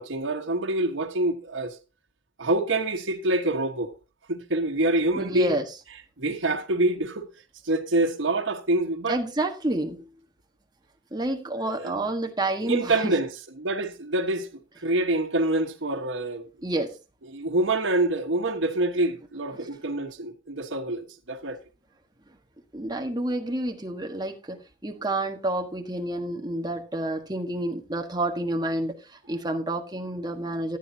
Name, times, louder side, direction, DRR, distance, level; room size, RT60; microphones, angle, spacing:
voice 1, 0.0-1.8 2.4-3.9 4.3-5.6 6.2-7.3 7.6-9.2 11.8-12.0 12.6-13.3 13.6-14.5 14.8-16.5 17.3-21.6, right 2 dB, 80° right, 1.4 m, -26 dB
voice 2, 5.1-5.6 9.1-10.0 11.1-13.2 16.6-16.9 19.5-19.7 22.7-30.8, right 1 dB, 20° right, 1.4 m, -29 dB
14.5 x 9.4 x 2.8 m
head